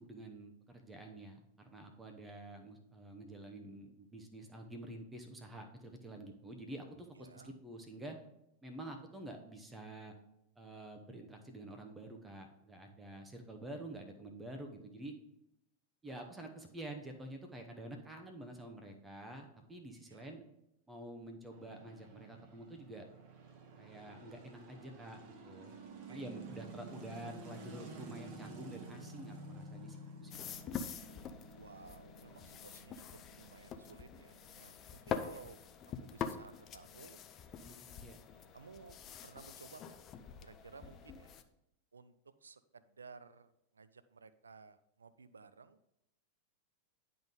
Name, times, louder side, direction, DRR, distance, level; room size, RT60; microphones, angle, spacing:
voice 1, 0.0-8.2 8.6-10.1 10.6-15.1 16.0-20.4 20.9-23.1 23.8-25.8 26.1-30.6 37.6-38.2, right 1 dB, 10° right, 4 dB, 0.8 m, -48 dB
voice 2, 7.2-7.6 20.1-20.3 26.1-26.4 31.5-33.0 33.4-35.6 36.0-37.2 38.5-39.0 39.2-40.0 40.4-41.4 41.9-42.1 42.4-45.8, right 5 dB, 75° right, 14 dB, 0.4 m, -56 dB
sound 1, 21.5-35.7, right 2 dB, 40° right, 1.1 m, -52 dB
sound 2, 30.3-41.4, left 7 dB, 30° left, 0.5 m, -45 dB
10.5 x 3.8 x 3.7 m, 0.82 s
figure-of-eight pair, 90°, 0 cm